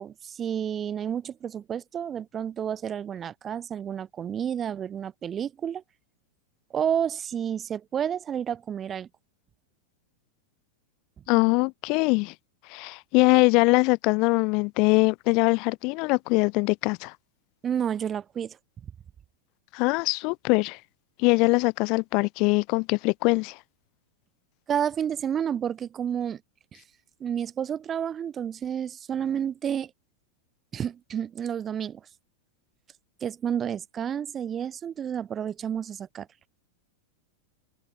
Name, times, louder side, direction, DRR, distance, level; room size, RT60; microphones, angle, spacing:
voice 1, 0.0-5.8 6.7-9.1 17.6-18.6 24.7-26.4 26.7-26.8 27.2-29.9 30.7-32.0 33.2-36.3, right 8 dB, 25° right, 3.3 m, -30 dB
voice 2, 11.3-12.3 12.7-17.1 19.7-20.8 21.2-23.6, left 28 dB, 45° left, 1.3 m, -22 dB
figure-of-eight pair, 90°, 0 cm